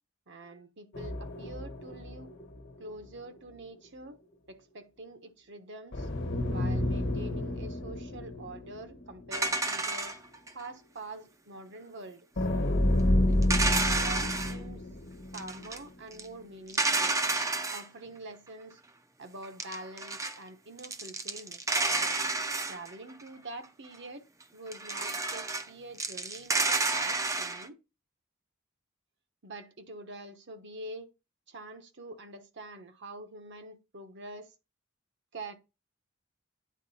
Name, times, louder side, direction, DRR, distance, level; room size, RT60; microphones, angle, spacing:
voice 1, 0.3-2.3 2.8-4.2 4.5-6.1 6.5-10.1 10.5-12.8 13.2-14.8 15.3-17.2 17.7-18.8 19.2-22.2 22.6-24.2 24.5-27.8 29.4-31.1 31.5-34.5 35.3-35.5, right 2 dB, 60° right, 1.2 m, -45 dB
sound 1, 0.9-3.0 3.3-3.4 5.9-9.3 9.7-9.8 12.4-15.7, left 1 dB, 55° left, 1.2 m, -30 dB
sound 2, 9.3-10.7 13.4-14.6 15.3-15.8 16.1-16.3 16.7-17.8 19.4-20.4 20.8-23.2 24.7-25.7 26.0-27.7, right 3 dB, 15° right, 0.6 m, -30 dB
9.8 x 3.9 x 4.2 m
head